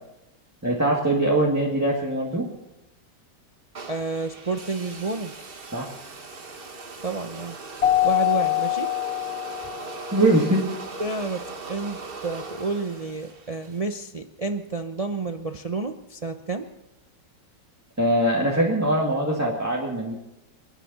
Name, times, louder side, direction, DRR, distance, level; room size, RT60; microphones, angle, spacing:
voice 1, 0.6-2.5 5.7-5.9 10.1-10.6 18.0-20.1, right 1 dB, 10° right, -3 dB, 2.0 m, -22 dB
sound 1, 3.7-13.9, right 3 dB, 35° right, 1.3 m, -39 dB
voice 2, 3.9-5.3 7.0-7.6 8.0-8.9 11.0-16.7, right 3 dB, 50° right, 6 dB, 0.4 m, -30 dB
Keyboard (musical), 7.8-10.1, left 14 dB, 45° left, 1.0 m, -24 dB
28.5 x 10.0 x 4.2 m, 0.94 s
omnidirectional pair, 1.9 m